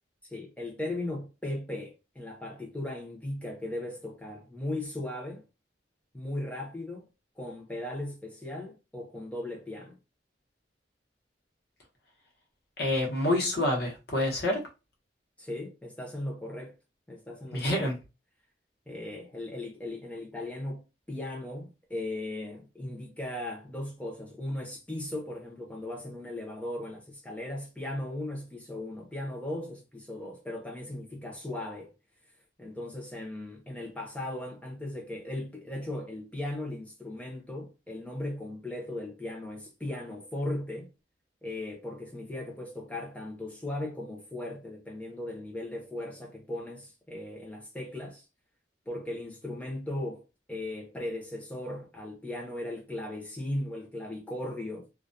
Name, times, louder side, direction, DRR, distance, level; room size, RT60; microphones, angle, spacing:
voice 1, 0.3-5.4 6.1-7.1 7.4-10.0 15.4-16.7 17.1-17.9 18.9-31.9 32.6-40.9 41.4-48.2 48.9-50.2 50.5-54.9, left 1 dB, 10° left, 0.6 m, -37 dB
voice 2, 12.8-14.6 17.5-18.0, left 1 dB, 60° left, 0.8 m, -27 dB
2.3 x 2.1 x 2.6 m
head